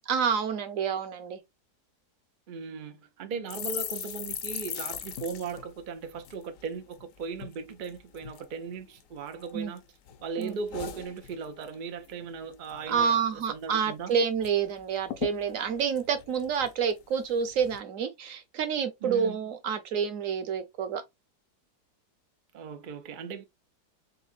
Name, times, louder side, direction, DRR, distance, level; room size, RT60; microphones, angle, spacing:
voice 1, 0.1-1.4 9.5-9.7 10.4-10.6 12.9-21.0, right 7 dB, 60° right, 1.1 m, -28 dB
voice 2, 2.5-9.8 10.2-14.1 19.0-19.4 22.5-23.4, right 5 dB, 75° right, 0.4 m, -38 dB
sound 1, 3.5-7.0 7.3-7.6 7.8-8.5 9.0-9.8 10.1-11.7 12.0-12.3 12.5-13.1 13.5-13.6 13.8-14.5 14.8-14.9 15.1-17.0 17.5-17.8, left 9 dB, 65° left, 0.9 m, -39 dB
4.1 x 3.6 x 2.5 m
omnidirectional pair, 1.8 m